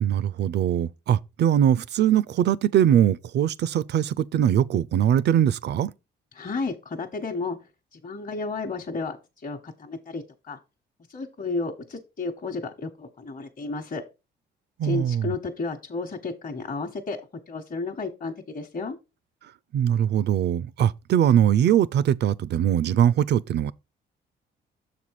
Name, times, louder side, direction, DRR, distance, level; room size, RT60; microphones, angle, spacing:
voice 1, 0.0-5.9 14.8-15.3 19.7-23.7, right 10 dB, 60° right, 0.4 m, -21 dB
voice 2, 6.3-7.6 7.9-9.2 9.4-10.6 11.1-14.0 14.8-17.2 17.5-19.0, left 3 dB, 45° left, 1.1 m, -32 dB
6.9 x 4.2 x 4.7 m
cardioid pair, 90°, 20 cm